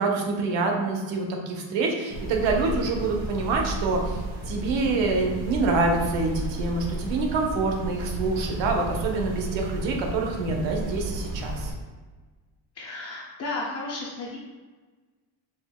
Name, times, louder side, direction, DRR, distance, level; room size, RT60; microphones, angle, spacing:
voice 1, 0.0-4.2 4.5-11.7, right 3 dB, 70° right, 1 dB, 0.8 m, -26 dB
sound 1, 2.1-11.7, right 1 dB, 85° right, 1.3 m, -33 dB
voice 2, 12.8-14.4, left 2 dB, 35° left, -5 dB, 0.5 m, -33 dB
4.2 x 2.8 x 2.2 m, 1.4 s
cardioid pair, 120°, 46 cm